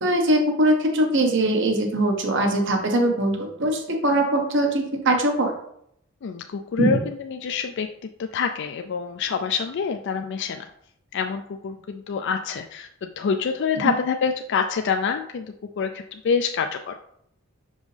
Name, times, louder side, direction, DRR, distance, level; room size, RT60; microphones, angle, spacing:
voice 1, 0.0-5.5 6.8-7.0 13.8-13.9, right 1 dB, 60° right, 3 dB, 1.1 m, -21 dB
voice 2, 6.2-7.9 8.2-10.6 11.1-15.5 15.8-17.0, left 6 dB, 60° left, 6 dB, 0.4 m, -26 dB
6.3 x 5.2 x 3.3 m, 0.71 s
head